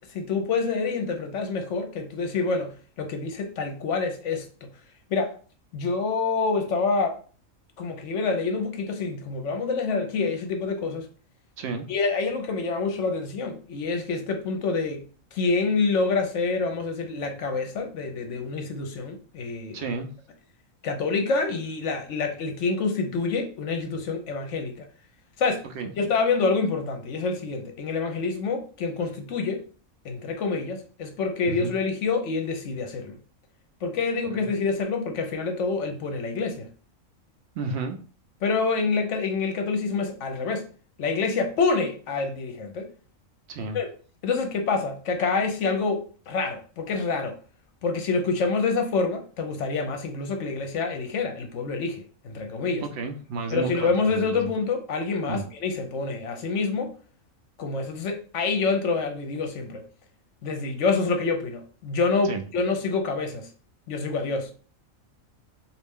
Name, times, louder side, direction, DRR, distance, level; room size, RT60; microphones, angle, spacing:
voice 1, 0.1-4.7 5.1-5.3 5.7-7.1 7.8-11.1 11.9-15.0 15.3-19.8 20.8-24.9 25.4-25.6 26.0-29.6 30.0-33.2 33.8-36.7 38.4-40.7 41.0-42.9 43.7-43.9 44.2-47.4 47.8-52.8 53.5-56.9 57.6-59.8 60.4-63.5 63.9-64.5, left 4 dB, 70° left, 0.9 m, -27 dB
voice 2, 19.7-20.1 25.7-25.9 31.4-31.7 34.3-34.5 37.5-38.0 43.5-43.8 52.8-53.9 54.2-54.4 55.3-55.4 62.2-62.4, right 4 dB, 65° right, 0.7 m, -31 dB
3.1 x 2.5 x 3.5 m
omnidirectional pair, 1.4 m